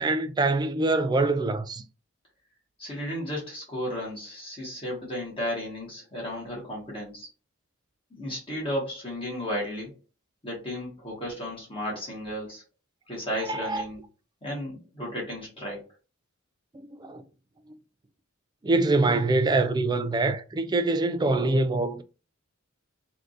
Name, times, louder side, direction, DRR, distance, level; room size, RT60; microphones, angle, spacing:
voice 1, 0.0-1.8 13.5-13.8 17.0-17.2 18.6-22.0, right 2 dB, 20° right, 0.3 m, -24 dB
voice 2, 2.8-7.3 8.1-9.9 10.4-12.6 13.1-14.0 14.4-15.9, equal, 25° left, 1.5 m, -34 dB
3.5 x 2.6 x 2.5 m
head